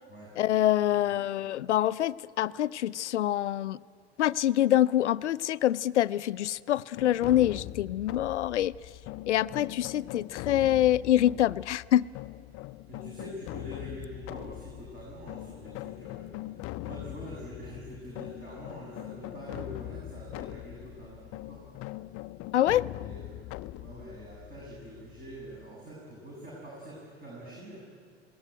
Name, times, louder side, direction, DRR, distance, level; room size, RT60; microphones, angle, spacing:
voice 1, 0.4-3.8 4.2-8.7 9.3-12.0 22.5-22.9, left 12 dB, 85° left, 0.5 m, -25 dB
sound 1, 7.0-25.7, left 17 dB, 40° left, 0.6 m, -42 dB
voice 2, 12.9-16.3 16.8-21.7 23.0-27.8, equal, 25° right, 7.1 m, -45 dB
20.5 x 17.5 x 9.2 m
hypercardioid pair, 85°, 34 cm